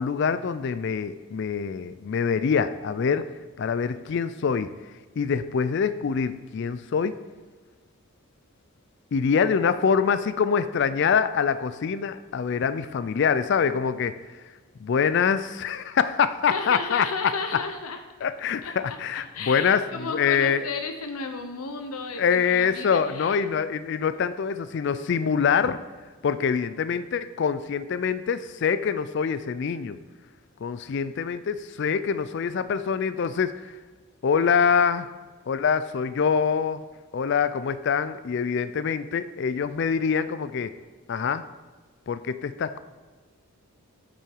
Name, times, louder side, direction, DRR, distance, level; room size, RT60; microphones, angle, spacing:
voice 1, 0.0-3.3 3.6-4.7 5.2-7.2 9.1-14.2 14.8-17.1 18.2-20.7 22.2-25.8 26.2-30.0 30.6-33.7 34.2-35.1 35.5-36.8 37.1-40.7 41.1-41.4 42.1-42.8, left 6 dB, 50° left, 13 dB, 0.3 m, -25 dB
voice 2, 16.5-18.0 18.6-19.0 19.3-23.4, left 4 dB, 85° left, 6 dB, 0.9 m, -33 dB
8.4 x 6.1 x 4.6 m, 1.4 s
head